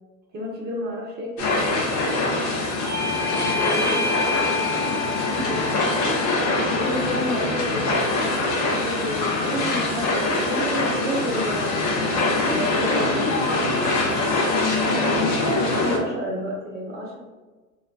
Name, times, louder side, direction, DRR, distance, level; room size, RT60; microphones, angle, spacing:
voice 1, 0.3-1.5 6.7-8.0 8.6-11.9 12.4-13.3 15.7-17.2, equal, 20° right, -3 dB, 0.4 m, -30 dB
sound 1, 1.4-16.0, left 2 dB, 40° left, 0.6 m, -23 dB
Bell / Doorbell, 2.8-8.0, left 4 dB, 10° left, 0.9 m, -30 dB
voice 2, 3.0-5.6 12.3-14.2, left 1 dB, 80° left, -2 dB, 1.1 m, -33 dB
2.2 x 2.1 x 3.7 m, 1.3 s
hypercardioid pair, 95°, 49 cm